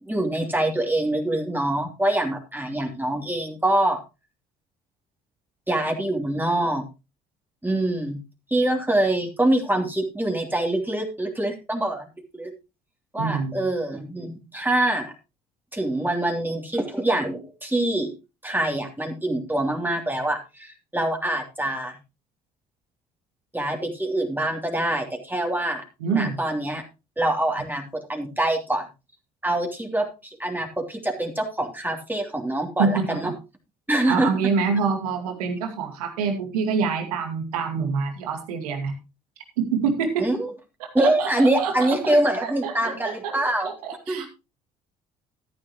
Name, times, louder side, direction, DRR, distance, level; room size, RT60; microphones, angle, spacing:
voice 1, 0.0-4.0 5.7-6.8 7.6-8.2 8.5-12.1 12.3-12.5 13.1-15.1 15.7-18.1 18.4-21.9 23.5-25.8 26.1-26.8 27.2-28.8 29.4-33.3 33.9-34.4 40.2-40.5 40.9-43.7 44.1-44.3, right 1 dB, 10° right, 2 dB, 3.1 m, -25 dB
voice 2, 13.2-13.5 26.0-26.4 32.8-33.3 34.1-38.9 39.6-40.3 40.8-42.9 43.2-43.3 43.6-44.3, right 5 dB, 90° right, 5 dB, 2.3 m, -26 dB
14.0 x 9.6 x 3.0 m, 0.27 s
hypercardioid pair, 60°, 19 cm